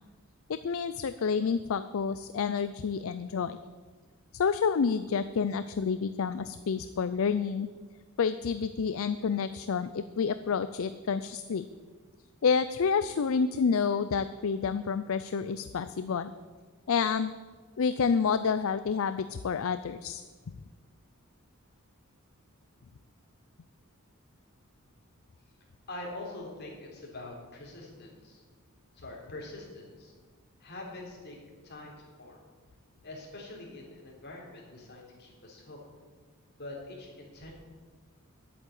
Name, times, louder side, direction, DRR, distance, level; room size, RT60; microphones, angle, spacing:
voice 1, 0.5-3.6 4.3-7.7 8.2-11.6 12.4-16.3 16.9-17.3 17.8-20.2, left 6 dB, 70° left, 12 dB, 0.4 m, -29 dB
voice 2, 25.9-28.4 28.9-30.1 30.6-31.4 31.6-32.4 33.0-35.8 36.6-37.5, left 2 dB, 50° left, -2 dB, 3.7 m, -44 dB
11.0 x 8.6 x 8.4 m, 1.5 s
head